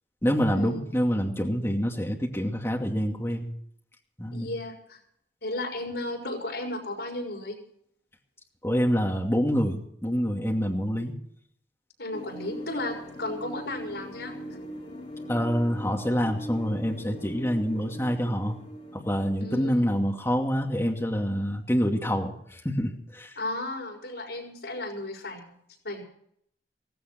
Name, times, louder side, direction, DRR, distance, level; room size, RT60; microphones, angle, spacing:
voice 1, 0.2-3.5 4.2-4.5 8.6-11.2 15.3-18.6 18.9-23.3, equal, 15° left, 0 dB, 2.5 m, -26 dB
voice 2, 4.3-5.0 5.4-7.6 12.0-14.3 19.4-19.8 23.4-25.6 25.8-26.0, left 2 dB, 80° left, 1 dB, 6.2 m, -34 dB
sound 1, 12.1-20.5, equal, 40° left, 5.9 m, -41 dB
17.0 x 16.5 x 4.5 m, 0.68 s
head